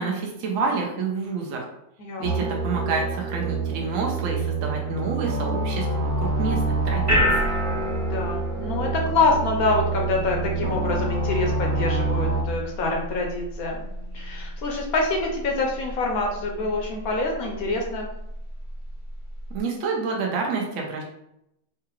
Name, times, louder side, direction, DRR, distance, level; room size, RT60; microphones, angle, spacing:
voice 1, 0.0-1.7 2.2-7.4 19.5-21.0, right 4 dB, 65° right, 0 dB, 0.8 m, -28 dB
voice 2, 2.0-2.5 7.9-13.8 14.1-18.1, left 3 dB, 65° left, 0 dB, 1.0 m, -26 dB
sound 1, 2.2-12.4, right 3 dB, 90° right, 1.4 m, -27 dB
sound 2, 6.0-19.6, equal, 15° right, 0.7 m, -31 dB
4.6 x 2.3 x 2.9 m, 0.82 s
omnidirectional pair, 1.9 m